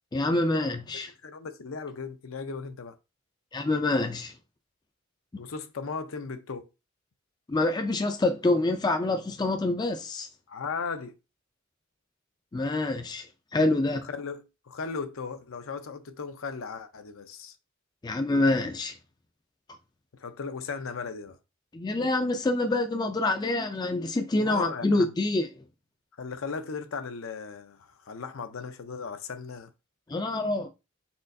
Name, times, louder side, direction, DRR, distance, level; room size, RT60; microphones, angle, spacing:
voice 1, 0.1-1.1 3.5-4.3 7.5-10.3 12.5-13.3 13.5-14.1 18.0-18.9 21.7-25.6 30.1-30.7, left 2 dB, 20° left, 0.3 m, -26 dB
voice 2, 1.2-3.0 5.4-6.7 10.5-11.1 13.9-17.6 20.1-21.4 24.4-25.1 26.2-29.7, left 5 dB, 75° left, 0.6 m, -37 dB
4.4 x 3.9 x 2.6 m
head